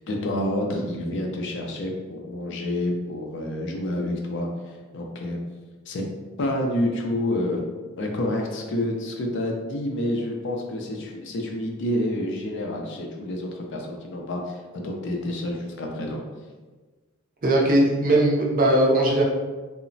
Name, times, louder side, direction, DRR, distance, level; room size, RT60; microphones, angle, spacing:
voice 1, 0.1-5.4 5.9-6.0 6.4-7.6 8.0-16.2, left 1 dB, 55° left, 1 dB, 0.4 m, -28 dB
voice 2, 17.4-19.2, right 1 dB, 40° right, -2 dB, 0.4 m, -19 dB
2.9 x 2.0 x 2.5 m, 1.3 s
head